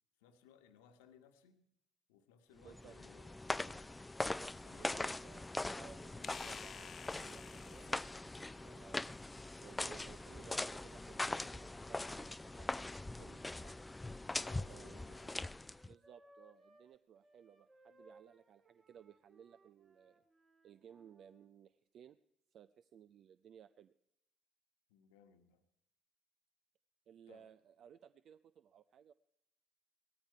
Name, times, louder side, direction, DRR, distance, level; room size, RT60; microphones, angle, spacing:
voice 1, 0.2-1.7 2.1-4.0 4.5-5.4 14.3-15.4 24.9-25.6 27.3-27.5, left 8 dB, 75° left, 8 dB, 1.3 m, -64 dB
voice 2, 2.5-3.0 4.6-9.0 9.6-13.8 14.7-15.0 15.9-20.2 20.6-22.2 22.5-23.9 27.1-29.1, right 9 dB, 55° right, 14 dB, 0.5 m, -60 dB
sound 1, 2.6-15.9, left 2 dB, 15° left, 0.4 m, -42 dB
sound 2, 4.5-11.3, left 7 dB, 45° left, 0.7 m, -56 dB
Wind instrument woodwind instrument, 14.0-16.9 17.2-21.5, right 2 dB, 30° right, 2.9 m, -66 dB
18.0 x 14.0 x 4.6 m, 0.77 s
hypercardioid pair, 55°, 0 cm